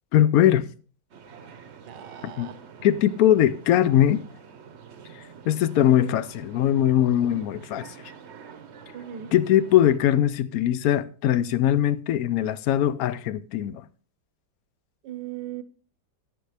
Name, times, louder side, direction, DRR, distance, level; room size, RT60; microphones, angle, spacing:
voice 1, 0.1-0.7 2.2-2.5 2.8-4.2 5.5-7.9 9.3-13.8, left 11 dB, 70° left, 0.9 m, -21 dB
sound 1, 1.1-10.0, right 6 dB, 50° right, 0.9 m, -47 dB
voice 2, 1.9-2.6 7.3-7.4 8.9-9.3 15.0-15.6, right 11 dB, 80° right, 1.4 m, -38 dB
11.5 x 9.2 x 3.3 m
omnidirectional pair, 1.9 m